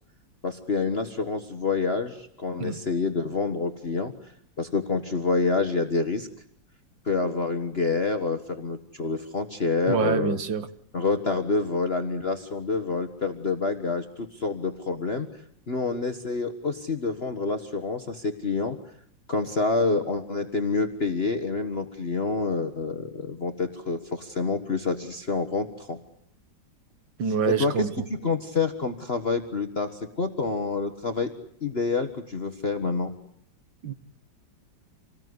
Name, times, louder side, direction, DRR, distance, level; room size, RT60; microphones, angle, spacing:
voice 1, 0.4-4.1 4.6-6.3 7.0-10.4 10.9-15.3 15.7-18.8 19.3-26.0 27.4-31.3 31.6-33.1, left 4 dB, 35° left, 7 dB, 1.5 m, -27 dB
voice 2, 9.9-10.7 27.2-27.9 33.8-33.9, right 6 dB, 80° right, 11 dB, 2.2 m, -26 dB
27.5 x 19.5 x 9.6 m, 0.69 s
omnidirectional pair, 2.0 m